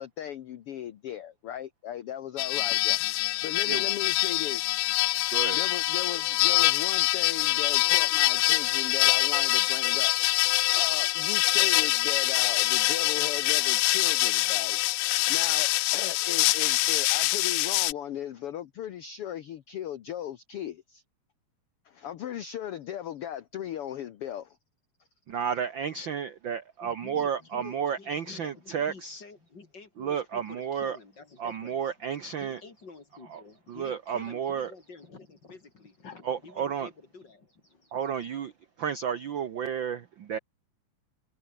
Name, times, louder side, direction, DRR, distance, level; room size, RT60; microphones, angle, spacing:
voice 1, 0.0-3.0 3.4-4.8 5.5-10.1 10.8-14.8 15.3-21.0 21.8-24.6 36.0-36.1 37.8-37.9, left 10 dB, 60° left, 1.6 m, -37 dB
sound 1, 2.4-17.9, left 20 dB, 80° left, 1.8 m, -25 dB
voice 2, 25.3-29.2 30.0-31.0 31.4-32.6 33.3-33.4 33.7-34.7 36.2-36.9 37.9-38.5 38.8-40.4, right 8 dB, 65° right, 1.2 m, -32 dB
voice 3, 26.8-38.0, left 4 dB, 35° left, 4.0 m, -50 dB
omnidirectional pair, 3.6 m